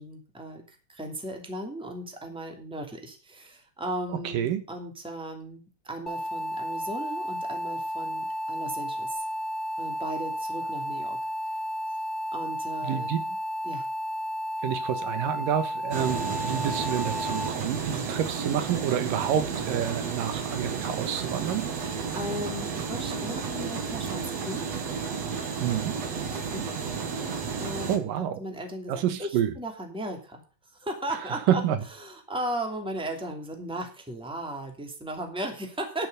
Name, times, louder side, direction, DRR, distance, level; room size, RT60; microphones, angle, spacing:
voice 1, 0.0-9.2 9.8-11.2 11.5-11.6 12.3-13.1 13.6-13.9 21.8-24.8 26.1-27.0 27.6-30.4 30.7-31.6 32.0-36.1, right 1 dB, ahead, 2.3 m, -36 dB
sound 1, 6.1-17.5, equal, 15° left, 1.8 m, -32 dB
voice 2, 12.8-13.2 14.6-21.7 25.6-26.0 27.9-28.4 28.9-29.5 31.5-31.8, right 10 dB, 85° right, 2.9 m, -28 dB
sound 2, 15.9-28.0, right 6 dB, 55° right, 2.8 m, -32 dB
11.0 x 7.9 x 6.8 m
omnidirectional pair, 3.8 m